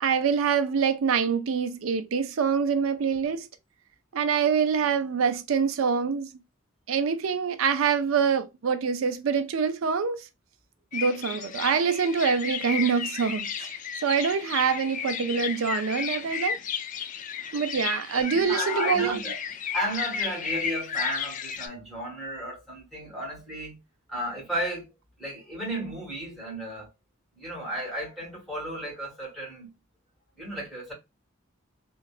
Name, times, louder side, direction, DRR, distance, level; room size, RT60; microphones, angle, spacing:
voice 1, 0.0-3.5 4.1-6.3 6.9-10.3 10.9-13.7 14.0-16.6 17.5-19.2, right 6 dB, 90° right, 0.4 m, -25 dB
sound 1, 10.9-21.7, left 7 dB, 40° left, 0.4 m, -33 dB
voice 2, 18.3-19.4 19.7-23.8 24.1-24.9 25.2-26.9 27.4-29.7 30.4-30.9, right 1 dB, ahead, 1.8 m, -34 dB
3.1 x 2.3 x 2.4 m
head